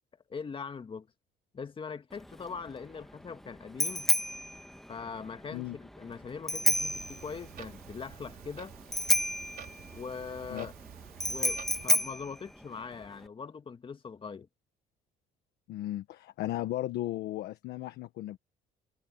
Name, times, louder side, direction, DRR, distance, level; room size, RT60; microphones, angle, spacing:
voice 1, 0.3-1.1 1.5-4.1 4.9-8.7 9.9-10.7 11.3-14.5, left 5 dB, 30° left, 2.0 m, -41 dB
Bicycle bell, 2.1-13.3, left 1 dB, ahead, 1.4 m, -32 dB
Clock, 6.6-11.9, right 10 dB, 60° right, 4.1 m, -49 dB
voice 2, 15.7-18.4, left 15 dB, 80° left, 1.3 m, -35 dB
cardioid pair, 110°, 17 cm